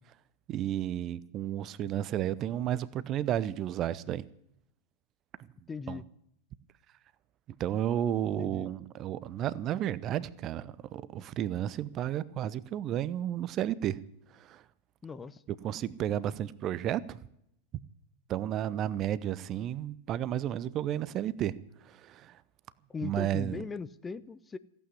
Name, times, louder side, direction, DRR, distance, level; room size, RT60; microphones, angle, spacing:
voice 1, 0.5-4.2 5.9-6.0 7.6-14.0 14.5-14.6 15.6-17.2 18.3-21.5 21.8-22.3 23.0-23.6, right 11 dB, 35° right, 0.6 m, -32 dB
voice 2, 5.7-6.1 8.4-8.7 15.0-15.4 22.9-24.6, left 5 dB, 15° left, 0.5 m, -39 dB
15.0 x 8.5 x 9.6 m
figure-of-eight pair, 90°, 0 cm